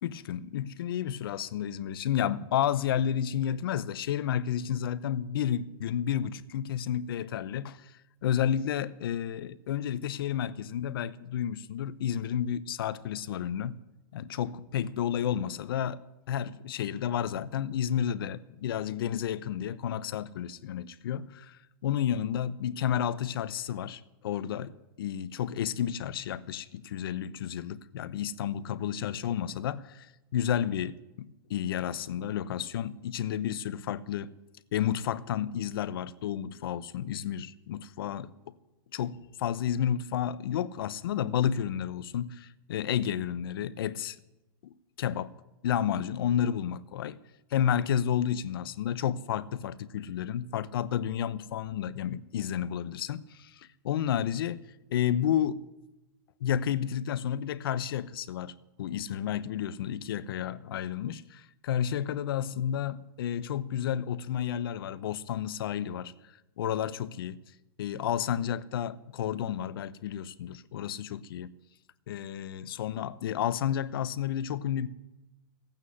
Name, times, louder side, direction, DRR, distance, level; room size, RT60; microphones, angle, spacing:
voice 1, 0.0-13.8 14.1-16.0 16.3-34.3 34.7-38.5 38.9-44.2 44.6-45.3 45.6-47.2 47.5-54.6 54.9-55.6 56.4-67.4 67.8-71.5 72.1-74.9, left 9 dB, 75° left, 0.9 m, -31 dB
16.0 x 9.0 x 9.7 m
hypercardioid pair, 130°, 12 cm